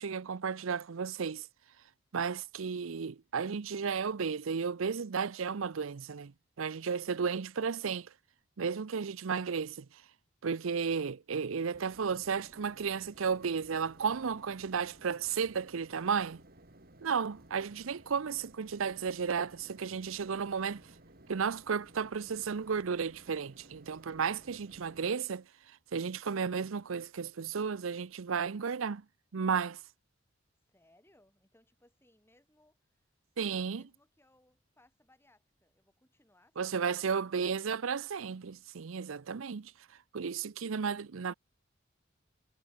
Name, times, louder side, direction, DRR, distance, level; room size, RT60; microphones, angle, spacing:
voice 1, 0.0-1.5 2.1-8.1 8.6-9.9 10.4-16.4 17.0-20.8 21.3-29.0 29.3-29.8 33.4-33.8 36.6-39.7 40.1-41.3, right 6 dB, 85° right, 0.6 m, -33 dB
voice 2, 6.7-7.2 30.7-33.1 33.4-37.2, left 1 dB, 10° left, 7.6 m, -67 dB
sound 1, 11.7-25.1, right 1 dB, 50° right, 3.6 m, -58 dB
head